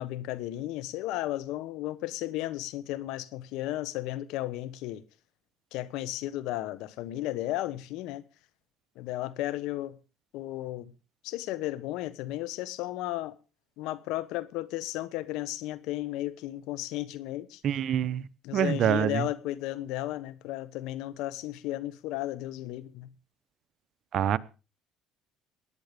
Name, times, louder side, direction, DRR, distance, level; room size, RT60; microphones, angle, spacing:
voice 1, 0.0-5.0 5.7-8.2 9.0-10.0 10.3-10.9 11.2-13.3 13.8-17.6 18.4-23.1, left 15 dB, 80° left, 1.2 m, -34 dB
voice 2, 17.6-18.3 18.5-19.3 24.1-24.4, right 9 dB, 55° right, 0.9 m, -26 dB
17.0 x 10.5 x 5.1 m
supercardioid pair, 90°, 0 cm